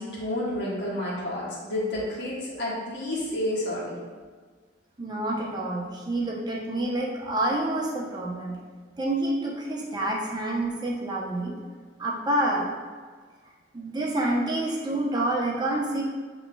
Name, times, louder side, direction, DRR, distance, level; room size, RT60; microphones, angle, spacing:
voice 1, 0.0-4.0, left 1 dB, 65° left, -6 dB, 1.4 m, -30 dB
voice 2, 5.0-8.6 9.0-11.5 12.0-12.7 13.7-16.0, right 1 dB, 20° right, -2 dB, 0.7 m, -28 dB
7.6 x 3.0 x 2.2 m, 1.5 s
head